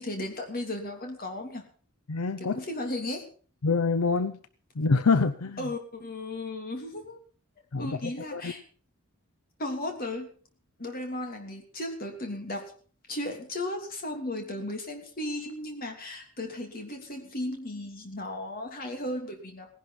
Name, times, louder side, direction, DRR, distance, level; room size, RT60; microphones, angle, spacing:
voice 1, 0.0-1.6 2.4-3.2 5.6-7.2 7.8-8.6 9.6-10.3 10.8-12.6 13.1-19.7, left 1 dB, 40° left, 3.0 m, -35 dB
voice 2, 2.1-2.6 3.6-4.4 4.8-5.7 7.7-8.5, left 4 dB, 80° left, 0.7 m, -26 dB
17.5 x 11.0 x 5.7 m
head